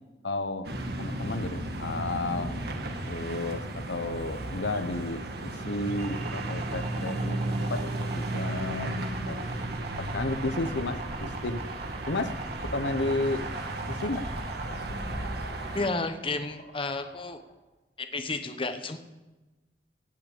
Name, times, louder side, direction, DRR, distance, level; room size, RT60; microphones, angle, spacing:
voice 1, 0.2-0.7 1.0-2.5 3.1-9.4 10.0-11.6 12.1-12.3 12.6-13.5 13.9-14.3, left 2 dB, 85° left, 10 dB, 0.9 m, -32 dB
sound 1, 0.6-15.9, right 1 dB, 65° right, 1.5 m, -34 dB
sound 2, 6.0-14.8, right 3 dB, 35° right, 0.8 m, -43 dB
sound 3, 13.0-17.5, equal, 55° left, 3.1 m, -43 dB
voice 2, 15.7-17.4 18.0-19.0, left 3 dB, 30° left, 8 dB, 1.0 m, -32 dB
17.5 x 5.9 x 8.3 m, 1.1 s
head